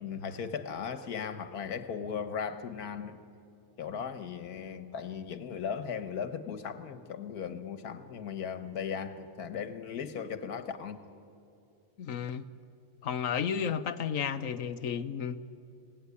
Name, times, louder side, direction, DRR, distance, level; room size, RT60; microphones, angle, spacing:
voice 1, 0.0-3.2 3.8-11.0, left 7 dB, 80° left, 1.7 m, -37 dB
voice 2, 12.0-12.4 13.0-15.4, left 7 dB, 65° left, 1.2 m, -32 dB
27.0 x 18.0 x 9.8 m
omnidirectional pair, 1.6 m